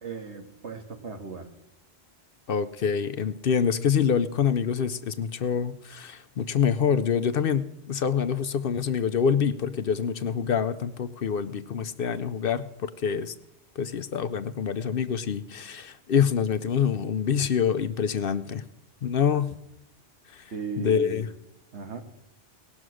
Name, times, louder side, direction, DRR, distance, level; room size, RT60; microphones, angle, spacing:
voice 1, 0.0-1.5 20.5-21.3 21.7-22.0, right 4 dB, 75° right, 5 dB, 1.8 m, -36 dB
voice 2, 2.5-13.3 13.8-18.6 19.0-19.6 20.3-20.5 20.8-21.3, left 7 dB, 60° left, 12 dB, 0.8 m, -26 dB
18.5 x 6.3 x 6.3 m, 0.82 s
omnidirectional pair, 1.2 m